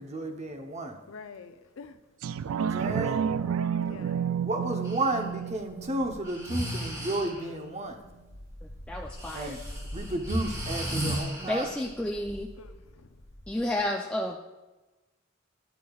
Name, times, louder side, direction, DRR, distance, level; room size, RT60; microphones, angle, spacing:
voice 1, 0.0-1.0 2.5-3.2 4.4-8.0 9.3-9.6 9.9-11.7, right 2 dB, 35° right, 4 dB, 0.8 m, -32 dB
voice 2, 1.1-2.0 3.8-4.4 12.6-13.2, left 5 dB, 80° left, 9 dB, 0.5 m, -47 dB
sound 1, 1.2-1.3 2.7-3.0 4.9-6.7 7.4-13.8, equal, 55° left, 1.2 m, -45 dB
sound 2, 2.2-7.2 7.7-7.8, right 7 dB, 80° right, 0.3 m, -31 dB
Breathing, 4.8-5.1 6.2-7.5 9.2-11.9, equal, 15° right, 1.9 m, -34 dB
voice 3, 8.9-9.5 11.4-12.5 13.5-14.4, left 1 dB, 5° left, 0 dB, 0.4 m, -31 dB
11.0 x 8.2 x 2.4 m, 1.1 s
head